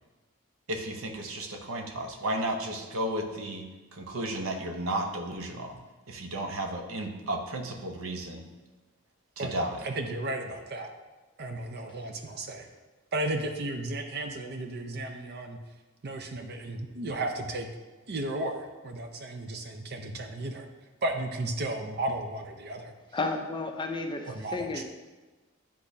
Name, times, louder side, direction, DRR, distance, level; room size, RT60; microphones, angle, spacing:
voice 1, 0.7-3.7 3.9-5.8 6.1-8.4 9.4-9.9, right 1 dB, 85° right, 4 dB, 0.8 m, -33 dB
voice 2, 9.8-10.9 11.4-12.7 13.1-15.6 16.0-17.7 18.1-20.7 21.0-22.9 24.3-24.8, right 2 dB, 55° right, 5 dB, 0.7 m, -34 dB
voice 3, 23.1-24.8, left 3 dB, 25° left, 4 dB, 0.5 m, -32 dB
10.0 x 3.6 x 2.7 m, 1.2 s
head